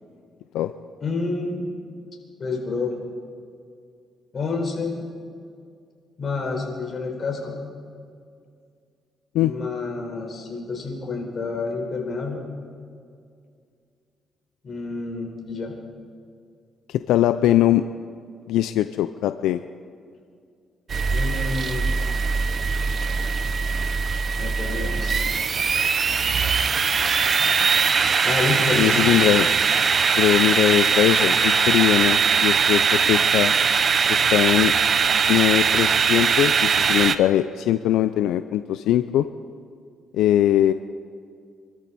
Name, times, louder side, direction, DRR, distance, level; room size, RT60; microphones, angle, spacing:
voice 1, 1.0-1.6 2.4-3.0 4.3-5.0 6.2-7.6 9.4-12.4 14.6-15.7 21.1-21.9 24.4-25.3 28.2-28.9, left 3 dB, 45° left, 1 dB, 4.3 m, -28 dB
voice 2, 16.9-17.8 18.5-19.6 28.7-29.5 30.2-33.5 34.1-34.7 35.3-39.3 40.1-40.7, left 12 dB, 90° left, 11 dB, 0.4 m, -21 dB
sound 1, 20.9-37.2, right 5 dB, 45° right, 0.8 m, -21 dB
26.0 x 13.0 x 4.2 m, 2.3 s
cardioid pair, 90°, 0 cm